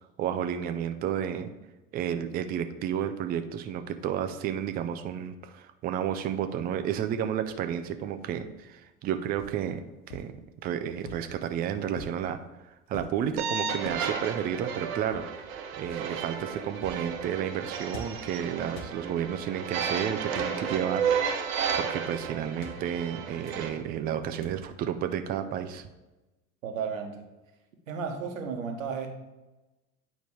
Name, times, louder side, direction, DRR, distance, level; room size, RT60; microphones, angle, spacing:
voice 1, 0.2-1.5 1.9-9.8 10.1-10.4 10.6-12.4 12.9-15.3 15.8-25.9, right 9 dB, 20° right, 9 dB, 0.4 m, -31 dB
sound 1, 7.4-7.9 9.4-9.6 10.1-10.4 11.0-11.4 12.0-12.3 12.9-13.2 13.8-14.1 15.1-15.4 15.8-16.1 16.8-17.1 17.9-18.3 18.7-19.0 20.2-20.6 21.1-21.2 21.6-21.9 22.6-22.8 23.4-23.7 24.4-24.8, left 2 dB, 55° left, 1.0 m, -45 dB
sound 2, 13.4-23.7, right 6 dB, 50° right, 1.1 m, -33 dB
voice 2, 26.6-27.2 27.9-29.1, right 6 dB, 70° right, 4 dB, 1.2 m, -33 dB
8.8 x 5.1 x 3.2 m, 1.1 s
figure-of-eight pair, 75°, 42 cm